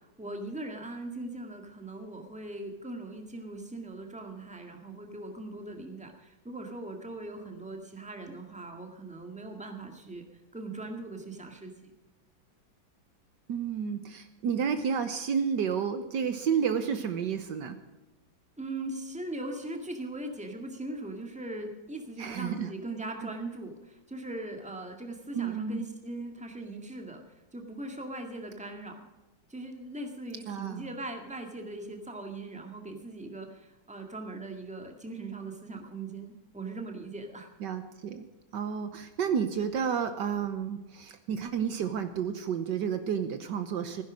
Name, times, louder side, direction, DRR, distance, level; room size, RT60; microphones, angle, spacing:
voice 1, 0.2-10.2 10.5-11.9 18.6-27.2 27.5-29.1 29.5-37.5, right 2 dB, 5° right, 3 dB, 1.8 m, -40 dB
voice 2, 13.5-17.8 22.2-22.7 23.2-23.3 25.3-25.8 30.5-30.9 37.6-38.3 38.5-44.0, right 7 dB, 70° right, 9 dB, 1.5 m, -31 dB
16.0 x 10.5 x 6.3 m, 1.0 s
omnidirectional pair, 2.1 m